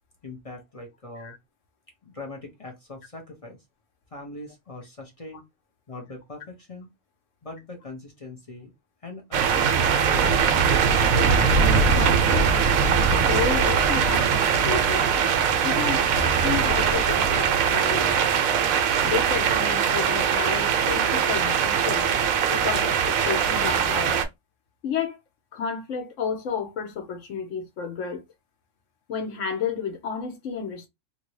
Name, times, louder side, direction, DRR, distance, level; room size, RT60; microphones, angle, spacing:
voice 1, 0.2-1.4 2.0-3.6 4.1-5.5 5.9-6.9 7.4-8.7 9.0-9.7 10.0-10.5, left 2 dB, 40° left, 0.5 m, -41 dB
sound 1, 9.3-24.3, right 6 dB, 75° right, 1.0 m, -21 dB
voice 2, 11.0-12.5 13.1-15.1 15.6-16.0 16.4-18.3 19.0-22.1 22.5-24.2 24.8-25.2 25.5-28.2 29.1-30.9, left 7 dB, 65° left, 1.1 m, -31 dB
2.8 x 2.7 x 3.0 m
omnidirectional pair, 1.4 m